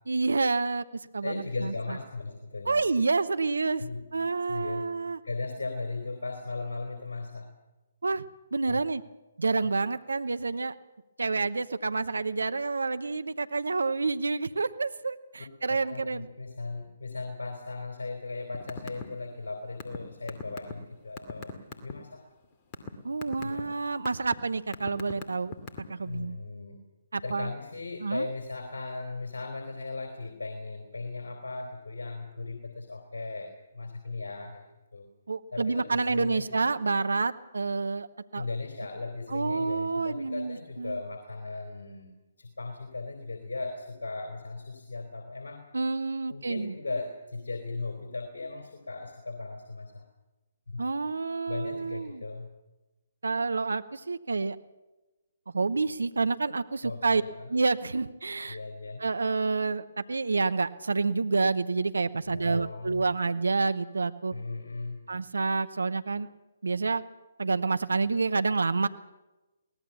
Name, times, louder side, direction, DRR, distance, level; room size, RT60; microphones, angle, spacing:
voice 1, 0.1-0.8 1.1-1.7 2.7-3.8 4.1-5.2 8.0-8.2 8.5-9.0 9.4-10.7 11.2-16.3 23.0-25.5 25.9-26.4 27.1-27.5 28.0-28.2 35.3-38.1 38.3-38.4 39.3-41.0 45.7-46.7 50.8-52.2 53.2-54.6 55.5-57.2 57.5-58.6 59.0-64.3 65.1-66.3 66.6-67.0 67.4-68.9, right 4 dB, 75° right, 13 dB, 0.9 m, -28 dB
voice 2, 1.2-2.8 3.8-4.0 4.5-4.8 5.2-7.5 8.7-8.8 15.9-22.2 23.4-23.7 26.0-26.8 27.2-34.6 34.9-35.1 35.5-36.7 38.4-42.1 42.4-45.6 46.3-50.1 50.7-50.8 51.5-52.5 56.8-57.5 58.5-59.1 62.3-63.0 64.3-65.0, left 3 dB, 70° left, 3 dB, 3.5 m, -37 dB
sound 1, 18.5-19.1 19.3-21.9 22.4-22.9 23.2-23.6 24.1-24.3 24.7-26.0, left 5 dB, 30° left, 2.4 m, -38 dB
22.5 x 18.5 x 7.1 m, 1.1 s
figure-of-eight pair, 135°, 0 cm